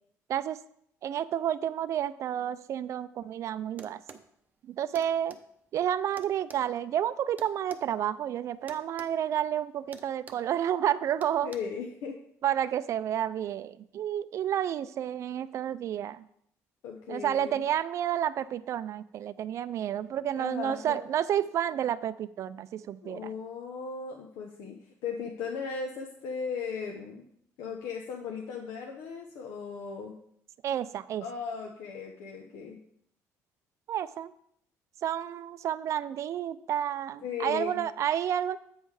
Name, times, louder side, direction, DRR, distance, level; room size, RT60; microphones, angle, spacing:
voice 1, 1.0-4.0 4.6-5.4 5.7-11.5 12.4-16.2 17.1-23.3 30.6-31.3 33.9-34.3 35.0-38.6, right 10 dB, 55° right, 15 dB, 0.4 m, -30 dB
sound 1, 3.8-4.3 4.9-5.4 6.2-7.9 8.7-9.1 9.4-9.6 9.9-10.5 11.2-11.6, right 4 dB, 25° right, 0.7 m, -48 dB
voice 2, 11.4-12.2 16.8-17.7 20.2-21.0 23.0-27.2 27.6-30.1 31.2-32.8 37.2-37.8, left 5 dB, 80° left, 1 dB, 0.9 m, -37 dB
8.1 x 5.5 x 4.8 m, 0.69 s
cardioid pair, 120°, 6 cm